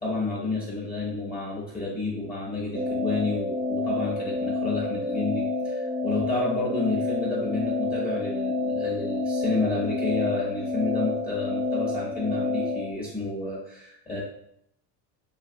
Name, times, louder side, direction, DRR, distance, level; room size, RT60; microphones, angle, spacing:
voice 1, 0.0-14.2, left 3 dB, 20° left, -5 dB, 0.9 m, -30 dB
sound 1, 2.7-12.9, left 2 dB, 15° right, 0.5 m, -29 dB
2.7 x 2.4 x 2.7 m, 0.72 s
supercardioid pair, 100°, 49 cm